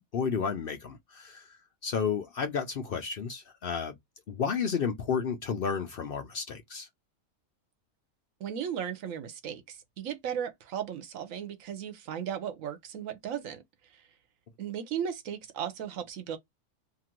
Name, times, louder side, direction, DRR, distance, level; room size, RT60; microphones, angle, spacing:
voice 1, 0.1-4.0 4.3-6.9, left 6 dB, 60° left, 0.6 m, -32 dB
voice 2, 8.4-13.6 14.6-16.4, right 8 dB, 85° right, 1.1 m, -36 dB
2.8 x 2.4 x 2.9 m
omnidirectional pair, 1.4 m